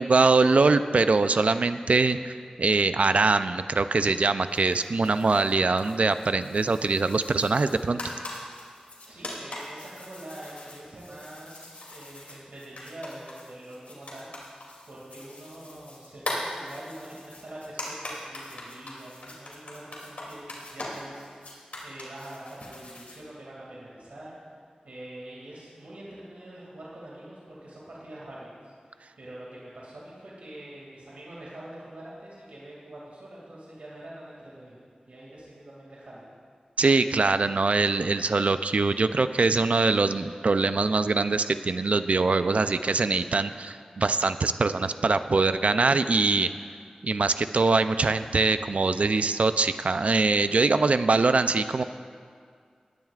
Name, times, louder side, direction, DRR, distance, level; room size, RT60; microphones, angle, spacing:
voice 1, 0.0-8.0 36.8-46.5 47.0-51.8, right 3 dB, 65° right, 11 dB, 0.4 m, -23 dB
sound 1, 4.5-23.2, left 1 dB, 75° left, 2.7 m, -41 dB
voice 2, 9.1-24.6 24.8-36.3, right 1 dB, 85° right, -6 dB, 2.3 m, -44 dB
20.0 x 10.5 x 2.4 m, 2.1 s
wide cardioid pair, 80°, 2 cm